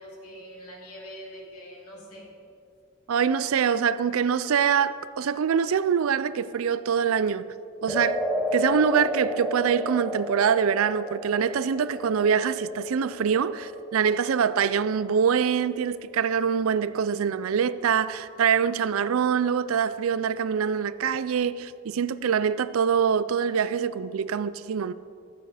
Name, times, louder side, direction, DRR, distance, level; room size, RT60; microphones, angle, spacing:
voice 1, 0.0-2.3, equal, 90° left, 3.1 m, -43 dB
voice 2, 3.1-7.5 7.8-8.2 8.5-24.9, right 7 dB, 75° right, 0.4 m, -24 dB
sound 1, 7.9-16.2, equal, 5° left, 0.8 m, -33 dB
14.0 x 8.8 x 5.0 m
head